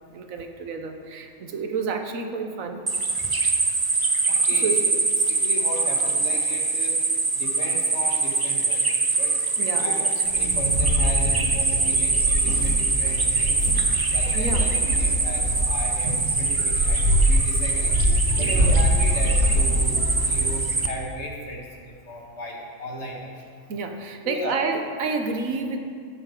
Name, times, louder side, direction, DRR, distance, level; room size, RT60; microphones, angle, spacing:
voice 1, 0.1-2.8 4.6-4.8 9.6-10.4 14.3-14.7 18.4-18.7 23.7-25.8, right 4 dB, 85° right, 5 dB, 1.3 m, -30 dB
sound 1, 2.9-20.9, right 3 dB, 30° right, 0.4 m, -24 dB
voice 2, 4.3-4.8 5.2-6.9 7.4-9.4 9.8-10.0 10.3-13.7 14.1-14.7 15.0-18.0 18.4-23.3 24.2-24.6, equal, 55° left, -1 dB, 1.8 m, -36 dB
sound 2, 10.3-20.6, equal, 65° right, 2.6 m, -24 dB
14.5 x 8.9 x 3.8 m, 2.2 s
omnidirectional pair, 1.4 m